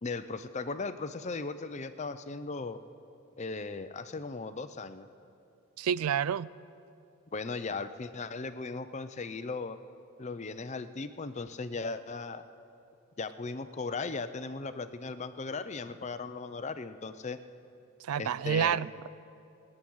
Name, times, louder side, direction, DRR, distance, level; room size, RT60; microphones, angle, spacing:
voice 1, 0.0-2.8 3.4-5.1 7.3-9.8 10.2-12.4 13.2-17.4 18.2-18.8, left 4 dB, 30° left, 0.5 m, -37 dB
voice 2, 5.8-6.5 18.0-19.1, right 8 dB, 85° right, 0.4 m, -29 dB
21.0 x 9.8 x 6.3 m
head